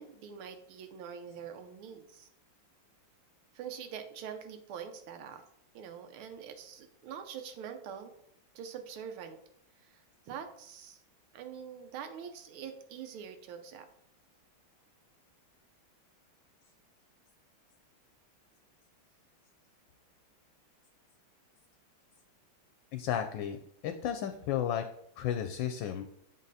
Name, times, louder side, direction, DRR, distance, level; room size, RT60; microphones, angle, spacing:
voice 1, 0.0-2.3 3.5-5.4 5.7-8.1 8.6-9.4 9.8-11.0 11.3-13.9, right 7 dB, 85° right, 7 dB, 1.6 m, -44 dB
voice 2, 22.9-24.8 25.2-26.0, left 10 dB, 75° left, 7 dB, 1.2 m, -33 dB
7.5 x 4.1 x 4.0 m, 0.71 s
omnidirectional pair, 2.3 m